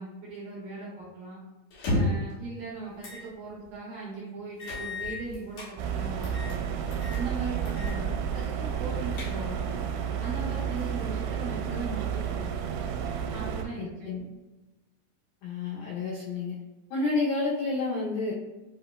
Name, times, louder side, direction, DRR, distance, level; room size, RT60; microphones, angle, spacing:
voice 1, 0.0-1.4 1.8-6.6 7.1-9.7 10.2-12.5 13.3-14.1, right 3 dB, 70° right, -6 dB, 2.3 m, -39 dB
sound 1, 1.7-2.3 3.0-3.2 3.6-3.7 4.6-5.7 6.2-6.6 6.9-7.2 7.7-8.0 8.3-8.4 8.9-9.7, left 1 dB, 65° left, 2.5 m, -32 dB
sound 2, 5.8-13.6, right 8 dB, 85° right, 2.8 m, -31 dB
voice 2, 13.8-14.2 15.4-16.6 16.9-18.3, left 3 dB, 85° left, -4 dB, 2.0 m, -30 dB
7.5 x 2.8 x 2.2 m, 1.1 s
omnidirectional pair, 5.1 m